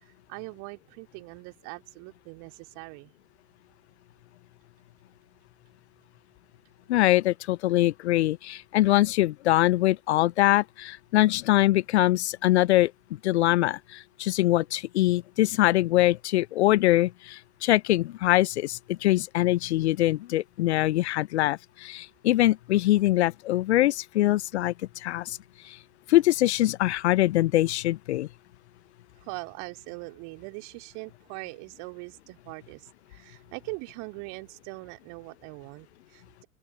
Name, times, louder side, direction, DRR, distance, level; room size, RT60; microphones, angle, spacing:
voice 1, 0.0-3.1 29.2-36.5, right 34 dB, 40° right, 3.7 m, -41 dB
voice 2, 6.9-12.9 13.2-25.4 25.6-25.8 26.1-28.3, left 16 dB, 50° left, 0.9 m, -23 dB
open air
figure-of-eight pair, 95°, 42 cm